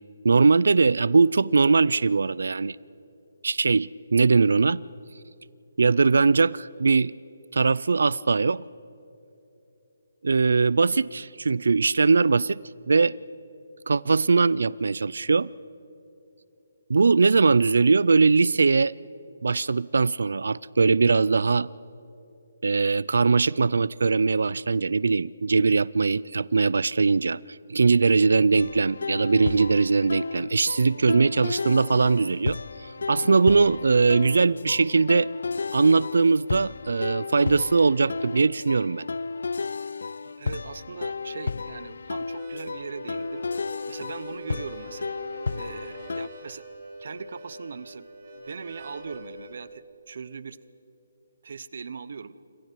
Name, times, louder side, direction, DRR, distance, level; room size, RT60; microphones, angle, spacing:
voice 1, 0.2-2.8 3.4-4.8 5.8-7.1 7.5-8.7 10.2-12.6 12.9-13.1 13.9-15.5 16.9-18.9 19.4-21.7 22.6-27.4 27.7-32.6 32.8-35.3 35.7-39.1, right 4 dB, 75° right, 22 dB, 0.4 m, -21 dB
sound 1, 28.6-46.3, left 4 dB, 70° left, 0.5 m, -33 dB
voice 2, 40.2-43.4 43.9-45.2 45.6-46.7 47.0-48.0 48.3-50.6 51.4-52.4, right 5 dB, 55° right, 17 dB, 0.8 m, -40 dB
Harmonica, 42.2-49.6, right 1 dB, 35° right, 5.6 m, -43 dB
28.5 x 26.5 x 4.6 m, 2.9 s
hypercardioid pair, 170°, 0 cm